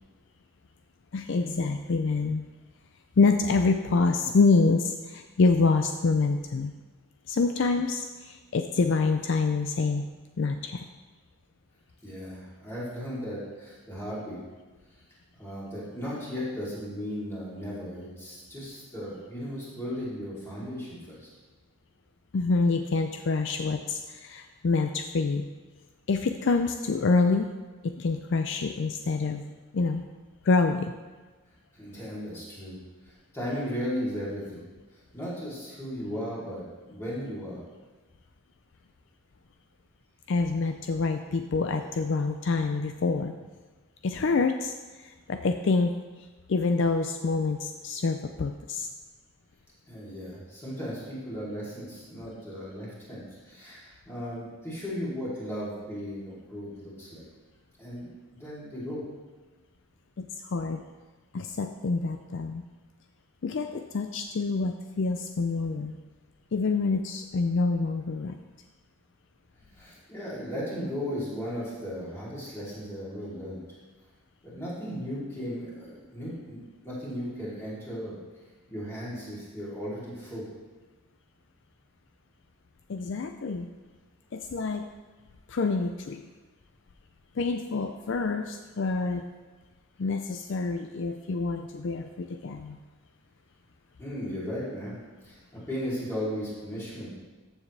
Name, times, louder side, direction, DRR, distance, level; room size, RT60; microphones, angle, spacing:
voice 1, 1.1-2.5 3.2-6.7 7.3-10.0 10.4-10.8 22.3-25.5 26.1-27.5 27.8-29.4 29.7-30.0 30.4-30.9 40.3-43.4 44.0-45.9 46.5-48.9 60.2-60.8 61.3-62.6 63.4-65.9 66.5-68.3 82.9-83.7 84.3-84.9 85.5-86.3 87.4-89.2 90.0-92.8, left 4 dB, 55° left, 7 dB, 0.4 m, -26 dB
voice 2, 12.0-14.4 15.4-21.3 31.7-32.8 33.0-34.7 34.9-37.6 49.9-57.3 57.8-58.1 58.3-59.0 69.7-73.6 74.4-76.6 76.8-78.2 78.7-80.5 94.0-95.0 95.2-95.4 95.7-97.2, equal, 10° left, -9 dB, 3.2 m, -36 dB
14.0 x 7.2 x 3.4 m, 1.3 s
head